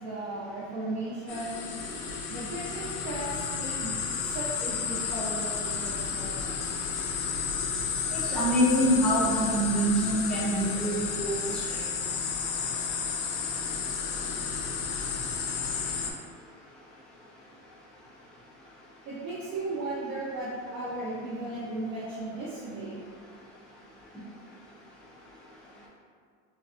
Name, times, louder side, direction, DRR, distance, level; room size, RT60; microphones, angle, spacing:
voice 1, 0.0-1.7 2.3-3.9 4.2-6.8 9.4-9.5 19.0-23.0, right 2 dB, 75° right, -10 dB, 0.8 m, -36 dB
sound 1, 1.3-16.1, left 6 dB, 70° left, 0.5 m, -32 dB
voice 2, 8.1-11.8, right 1 dB, 5° left, -8 dB, 0.3 m, -26 dB
2.6 x 2.2 x 2.4 m, 2.1 s
supercardioid pair, 140°, 34 cm